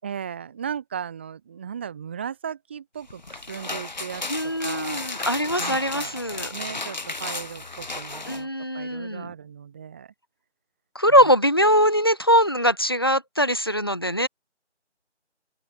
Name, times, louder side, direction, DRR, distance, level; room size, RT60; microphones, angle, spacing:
voice 1, 0.0-5.3 5.6-6.2 6.5-8.5 8.7-10.1 11.1-11.3, right 8 dB, 10° right, 3.3 m, -36 dB
sound 1, 3.1-8.4, left 3 dB, 35° left, 6.6 m, -34 dB
voice 2, 4.3-6.5 8.3-9.3 10.9-14.3, equal, 20° left, 1.2 m, -22 dB
figure-of-eight pair, 170°, 36 cm